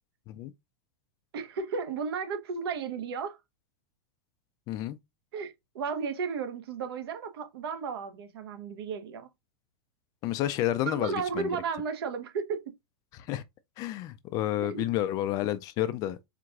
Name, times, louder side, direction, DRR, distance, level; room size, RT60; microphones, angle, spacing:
voice 1, 1.3-3.4 5.3-9.3 10.8-12.6 14.6-14.9, right 5 dB, 70° right, 1.2 m, -34 dB
voice 2, 4.7-5.0 10.2-11.5 13.1-13.4 13.8-16.3, left 13 dB, 30° left, 0.4 m, -30 dB
4.6 x 3.7 x 2.4 m
supercardioid pair, 160°, 13 cm